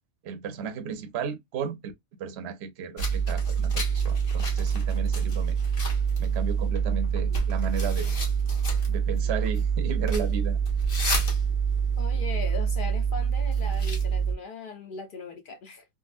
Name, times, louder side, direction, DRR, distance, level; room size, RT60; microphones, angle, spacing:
voice 1, 0.2-1.9 2.2-5.6 6.2-8.1 8.9-10.6, right 6 dB, 60° right, 0.8 m, -34 dB
sound 1, 3.0-14.4, right 6 dB, 45° left, 1.1 m, -26 dB
voice 2, 12.0-15.9, left 4 dB, 65° left, 0.5 m, -39 dB
3.7 x 2.0 x 2.4 m
omnidirectional pair, 1.4 m